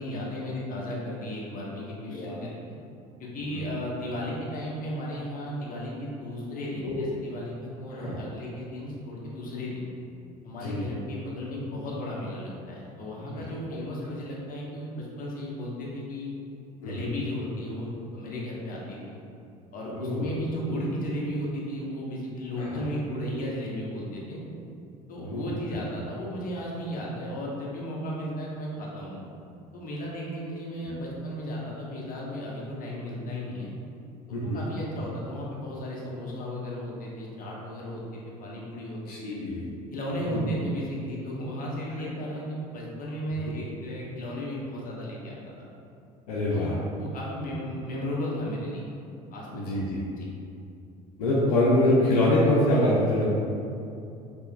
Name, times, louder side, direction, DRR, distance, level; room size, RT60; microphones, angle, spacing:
voice 1, 0.0-2.8 3.2-9.9 10.4-16.3 16.8-19.2 19.7-24.4 25.1-29.2 29.7-33.7 34.3-39.4 39.9-45.4 46.5-49.0 49.3-49.6 50.2-50.3, equal, 45° left, -4 dB, 1.3 m, -35 dB
voice 2, 2.1-2.4 3.5-3.7 6.8-7.0 7.9-8.2 10.6-10.9 13.3-13.4 16.8-17.1 19.9-20.3 22.6-22.8 25.2-25.8 30.8-30.9 34.3-34.7 39.1-39.7 40.2-40.4 42.0-42.3 46.3-46.7 49.5-50.0 51.2-53.2, left 1 dB, 85° left, -5 dB, 0.7 m, -25 dB
5.5 x 3.4 x 2.4 m, 2.6 s
hypercardioid pair, 65°, 19 cm